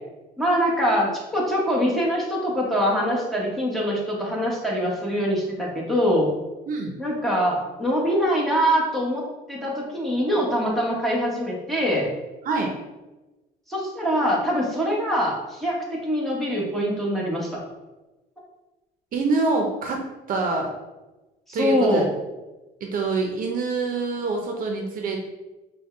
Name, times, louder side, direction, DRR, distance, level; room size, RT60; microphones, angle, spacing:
voice 1, 0.4-6.3 7.0-9.2 9.5-12.1 13.7-17.6 21.5-22.1, equal, ahead, -4 dB, 1.3 m, -23 dB
voice 2, 6.7-7.0 12.4-12.7 19.1-20.0 20.3-20.7 21.5-22.0 22.8-25.3, right 3 dB, 55° right, 1 dB, 0.7 m, -25 dB
5.1 x 2.3 x 3.8 m, 1.1 s
cardioid pair, 110°, 17 cm